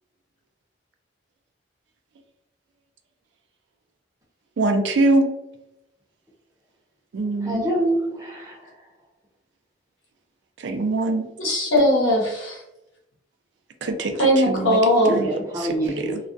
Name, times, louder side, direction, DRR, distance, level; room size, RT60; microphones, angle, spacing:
voice 1, 4.6-5.3 7.1-7.6 10.6-11.3 13.8-14.8 15.1-15.7 16.0-16.2, right 2 dB, 70° right, 6 dB, 0.3 m, -23 dB
voice 2, 7.4-8.7 15.0-16.1, right 1 dB, 15° right, -3 dB, 0.5 m, -26 dB
voice 3, 11.4-12.6 14.2-15.1, equal, 80° left, -3 dB, 0.9 m, -19 dB
2.3 x 2.1 x 2.5 m, 0.87 s
head